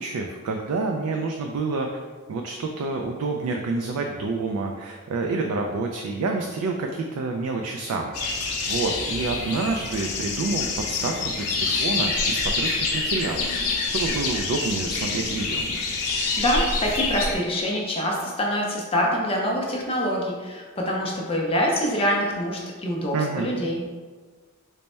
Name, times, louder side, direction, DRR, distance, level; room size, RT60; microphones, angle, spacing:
voice 1, 0.0-2.0 2.3-13.4 13.8-15.6 23.1-23.5, right 3 dB, 80° right, 2 dB, 0.3 m, -28 dB
sound 1, 8.1-17.3, left 3 dB, 80° left, 0.6 m, -26 dB
voice 2, 16.1-23.8, equal, 25° left, -2 dB, 0.5 m, -25 dB
3.3 x 2.1 x 4.1 m, 1.5 s
head